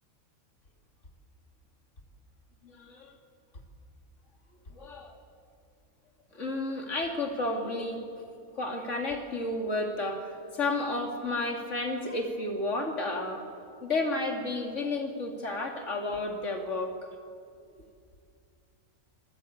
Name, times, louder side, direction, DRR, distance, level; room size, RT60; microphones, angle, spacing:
voice 1, 2.6-3.2 4.7-5.2 6.3-8.0 8.5-13.5 13.8-17.0, left 2 dB, 55° left, 2 dB, 2.9 m, -32 dB
26.0 x 20.5 x 8.5 m, 2.3 s
omnidirectional pair, 1.5 m